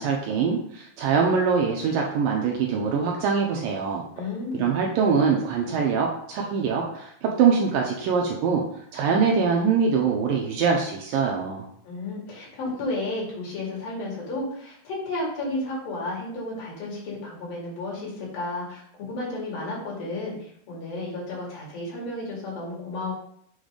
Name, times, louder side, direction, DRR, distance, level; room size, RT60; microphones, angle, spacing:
voice 1, 0.0-4.0 4.5-8.6 8.9-11.7, right 5 dB, 75° right, 0 dB, 2.2 m, -23 dB
voice 2, 4.1-4.6 11.8-23.1, left 2 dB, 65° left, -4 dB, 3.9 m, -32 dB
7.2 x 4.0 x 5.0 m, 0.67 s
omnidirectional pair, 4.6 m